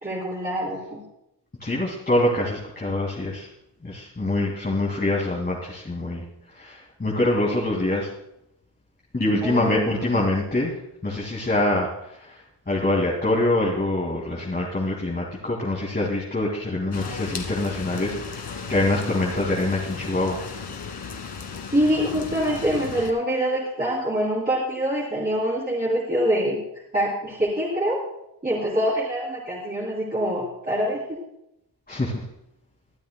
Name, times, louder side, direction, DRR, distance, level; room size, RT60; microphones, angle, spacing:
voice 1, 0.0-1.0 9.4-9.9 21.7-26.6 26.9-28.0 28.4-31.0, equal, 20° right, -7 dB, 3.3 m, -25 dB
voice 2, 1.6-3.5 3.8-6.2 6.5-8.1 9.1-10.7 11.0-12.4 12.7-20.4 31.9-32.2, left 1 dB, 20° left, -4 dB, 2.3 m, -25 dB
sound 1, 16.9-23.1, left 5 dB, 70° left, 1.8 m, -35 dB
23.0 x 12.5 x 2.2 m, 0.83 s
wide cardioid pair, 155°, 41 cm